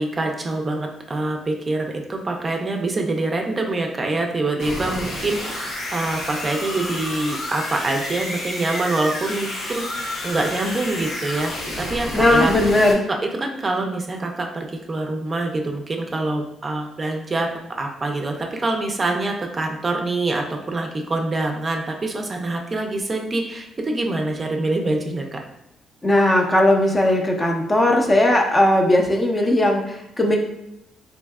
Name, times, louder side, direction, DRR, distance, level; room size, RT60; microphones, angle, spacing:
voice 1, 0.0-12.7 13.1-17.5 17.8-25.4, right 2 dB, 30° right, 2 dB, 0.4 m, -25 dB
sound 1, 4.6-12.9, left 1 dB, 80° left, 1.0 m, -30 dB
voice 2, 12.1-13.1 26.0-30.4, left 1 dB, 20° left, 2 dB, 0.5 m, -18 dB
3.2 x 2.7 x 2.3 m, 0.85 s
cardioid pair, 90°, 0 cm